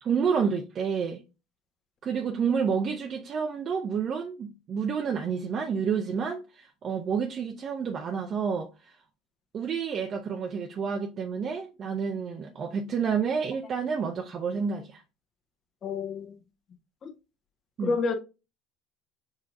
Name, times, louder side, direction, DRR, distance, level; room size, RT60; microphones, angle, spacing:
voice 1, 0.0-1.2 2.0-9.0 9.5-15.0 17.8-18.0, right 6 dB, 45° right, 0.7 m, -29 dB
voice 2, 15.8-16.4 17.0-17.1 17.8-18.1, left 4 dB, 40° left, 1.3 m, -29 dB
6.4 x 3.0 x 2.6 m
hypercardioid pair, 75°, 0 cm